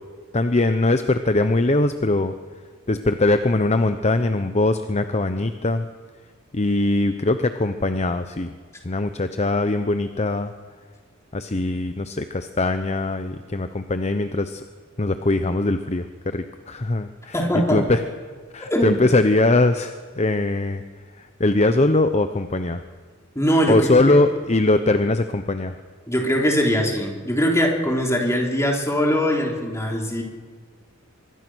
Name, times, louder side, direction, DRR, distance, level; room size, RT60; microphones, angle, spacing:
voice 1, 0.3-2.3 2.9-5.9 6.5-8.5 8.8-10.5 11.3-14.6 15.0-18.0 18.5-20.8 21.1-22.8 23.7-25.8, left 2 dB, 30° left, 9 dB, 0.8 m, -21 dB
voice 2, 17.3-17.8 18.7-19.0 23.4-24.2 26.1-30.2, equal, 15° left, 0 dB, 3.6 m, -21 dB
25.0 x 22.0 x 6.3 m, 1.5 s
head